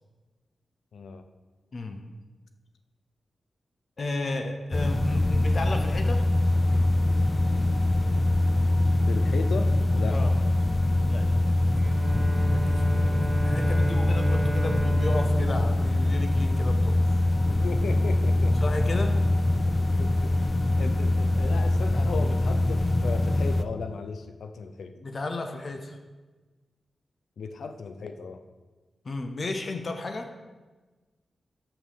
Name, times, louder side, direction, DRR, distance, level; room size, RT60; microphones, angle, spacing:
voice 1, 0.9-1.2 9.1-10.2 17.4-18.5 20.0-20.5 20.8-24.9 27.4-28.4, left 5 dB, 85° left, 8 dB, 0.6 m, -36 dB
voice 2, 4.0-6.2 10.1-10.3 11.1-11.5 12.5-16.9 18.6-19.2 25.0-26.0 29.0-30.3, left 2 dB, 45° left, 5 dB, 0.7 m, -33 dB
sound 1, 4.7-23.6, left 2 dB, 25° left, 0.3 m, -23 dB
Bowed string instrument, 11.7-17.0, right 3 dB, 30° right, 0.5 m, -33 dB
5.8 x 5.3 x 6.5 m, 1.3 s
wide cardioid pair, 140°, 0 cm